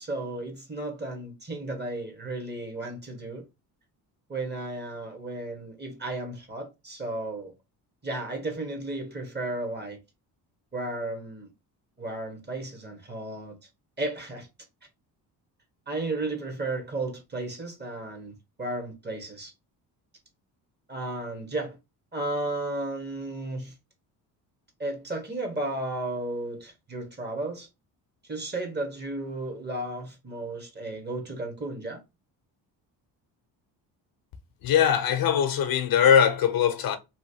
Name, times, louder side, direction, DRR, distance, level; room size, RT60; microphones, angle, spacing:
voice 1, 0.0-3.4 4.3-7.5 8.0-10.0 10.7-11.5 12.0-13.5 14.0-14.5 15.9-19.5 20.9-21.8 22.1-23.7 24.8-27.7 28.3-32.0, right 2 dB, 25° right, 1.3 m, -34 dB
voice 2, 34.6-37.0, left 8 dB, 60° left, 0.6 m, -21 dB
3.1 x 2.5 x 2.7 m
cardioid pair, 85°, 42 cm